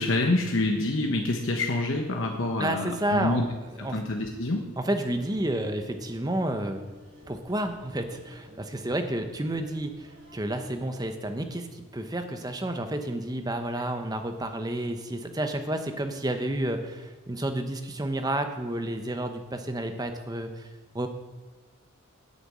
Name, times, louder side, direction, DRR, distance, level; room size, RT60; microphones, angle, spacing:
voice 1, 0.0-3.4 3.8-4.7, left 2 dB, 65° left, 2 dB, 1.1 m, -27 dB
voice 2, 2.6-3.4 3.8-4.0 4.8-6.8 7.3-20.7 20.9-21.1, right 1 dB, 20° right, 6 dB, 0.9 m, -30 dB
sound 1, 4.8-10.7, equal, 50° right, 3.4 m, -53 dB
9.4 x 6.8 x 8.7 m, 1.2 s
head